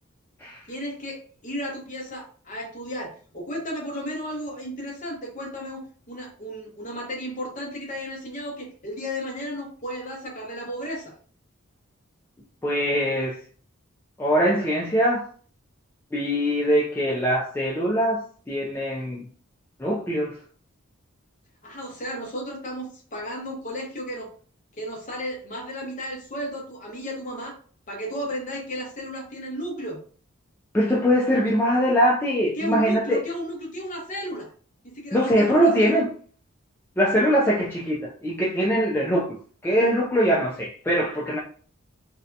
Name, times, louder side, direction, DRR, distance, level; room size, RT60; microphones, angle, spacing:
voice 1, 0.7-11.1 21.6-24.3 24.7-27.6 27.9-30.0 32.6-34.5 34.8-36.0, equal, 35° left, 0.7 m, -34 dB
voice 2, 12.6-13.4 14.2-15.2 16.1-18.2 18.5-19.2 19.8-20.3 30.7-33.2 35.1-36.1 37.0-41.4, equal, 10° left, 0.3 m, -22 dB
2.6 x 2.2 x 2.4 m
head